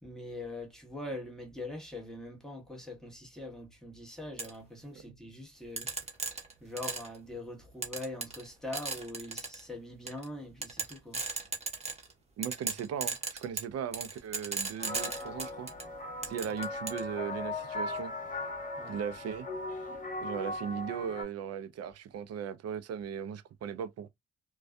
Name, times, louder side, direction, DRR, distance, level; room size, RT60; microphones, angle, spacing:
voice 1, 0.0-5.9 6.6-11.2 18.8-19.0, left 1 dB, ahead, 1.1 m, -42 dB
sound 1, 4.4-4.5 5.8-7.2 7.8-8.5 8.7-9.6 10.1-10.2 10.6-12.1 12.4-15.8 16.2-17.0, right 4 dB, 20° right, 0.9 m, -35 dB
voice 2, 12.4-15.7 16.2-18.1 18.9-19.5 20.2-24.1, right 8 dB, 55° right, 0.5 m, -38 dB
sound 2, 14.8-21.2, left 2 dB, 25° left, 0.9 m, -38 dB
2.5 x 2.3 x 2.2 m
cardioid pair, 90°, 30 cm